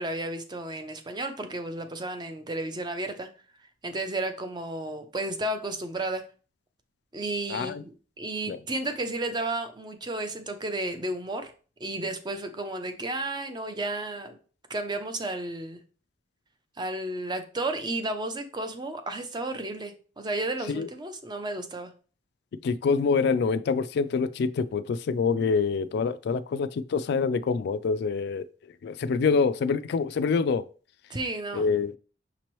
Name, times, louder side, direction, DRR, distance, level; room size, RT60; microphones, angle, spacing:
voice 1, 0.0-3.3 3.8-6.2 7.1-11.5 11.8-14.3 14.7-15.8 16.8-21.9 31.1-31.7, right 2 dB, 25° right, 0.5 m, -32 dB
voice 2, 7.5-7.8 8.5-8.6 20.7-20.9 22.6-28.5 28.8-30.6 31.5-31.9, left 5 dB, 65° left, 0.3 m, -26 dB
5.9 x 3.0 x 3.0 m
head